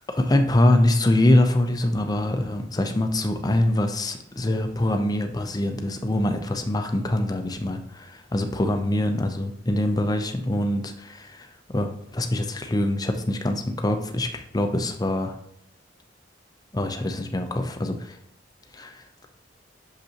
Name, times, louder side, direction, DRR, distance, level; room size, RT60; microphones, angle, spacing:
voice 1, 0.1-11.5 11.7-15.3 16.7-18.2 18.7-19.0, left 1 dB, 20° left, 6 dB, 0.6 m, -24 dB
6.7 x 5.4 x 2.9 m, 0.79 s
head